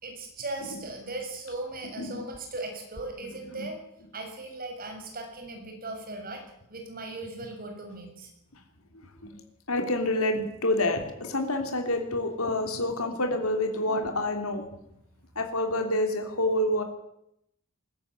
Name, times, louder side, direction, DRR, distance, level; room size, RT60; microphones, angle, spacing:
voice 1, 0.0-3.8 4.1-6.4 6.7-8.3 15.3-15.5, right 2 dB, 40° right, 3 dB, 6.9 m, -38 dB
voice 2, 9.7-14.7 15.3-16.8, left 1 dB, 75° left, 4 dB, 3.3 m, -27 dB
21.5 x 14.0 x 9.8 m, 0.79 s
head